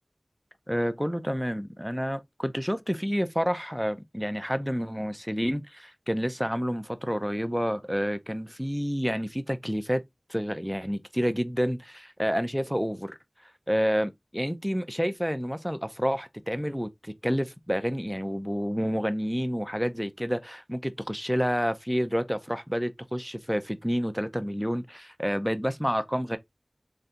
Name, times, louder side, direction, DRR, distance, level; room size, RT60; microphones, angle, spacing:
voice 1, 0.7-10.0 10.3-13.2 13.7-26.4, equal, ahead, 0.6 m, -29 dB
3.8 x 3.2 x 2.8 m
wide cardioid pair, 40°, 0 cm